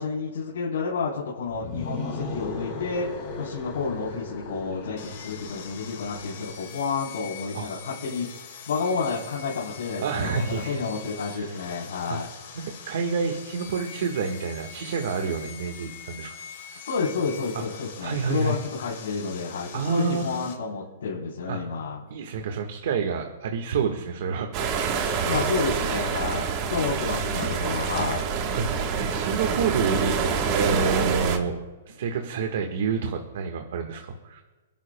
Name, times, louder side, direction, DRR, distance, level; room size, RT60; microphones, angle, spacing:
voice 1, 0.0-3.1 3.4-12.3 16.8-22.0 25.2-28.2 30.9-31.0, left 4 dB, 80° left, -4 dB, 3.7 m, -30 dB
sound 1, 1.5-6.5, left 3 dB, 25° left, 3.9 m, -36 dB
Sawing, 5.0-20.5, left 7 dB, 45° left, 3.2 m, -43 dB
voice 2, 10.0-10.8 11.3-11.6 12.1-12.2 12.5-16.4 16.8-16.9 17.5-17.6 18.0-18.6 19.7-20.4 21.5-21.7 22.1-25.6 27.5-28.1 28.5-31.6 31.9-34.4, right 5 dB, 55° right, 3 dB, 1.4 m, -29 dB
sound 2, 24.5-31.4, right 6 dB, 25° right, 1.3 m, -26 dB
28.0 x 11.5 x 2.2 m, 1.3 s
hypercardioid pair, 175°, 0 cm